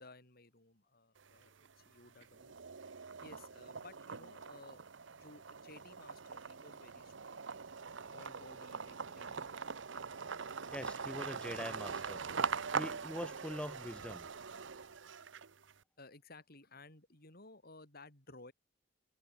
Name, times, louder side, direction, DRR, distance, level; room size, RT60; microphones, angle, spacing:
voice 1, 0.0-2.6 3.1-4.8 5.1-7.6 8.1-9.5 16.0-18.5, left 2 dB, 55° left, 6.4 m, -57 dB
sound 1, 1.2-1.8 2.2-15.7, right 5 dB, 75° right, 0.9 m, -42 dB
voice 2, 10.7-12.2 12.7-14.2, left 1 dB, 5° left, 0.9 m, -43 dB
head